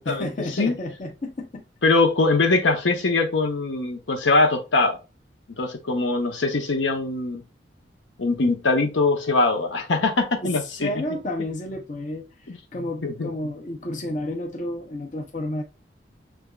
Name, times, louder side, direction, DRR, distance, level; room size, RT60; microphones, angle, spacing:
voice 1, 0.1-1.6 10.4-15.6, left 1 dB, 45° left, 0.6 m, -31 dB
voice 2, 1.8-5.0 5.6-7.4 8.2-10.9 12.5-12.6 13.0-13.3, left 3 dB, 85° left, 0.8 m, -22 dB
6.1 x 3.3 x 2.3 m
head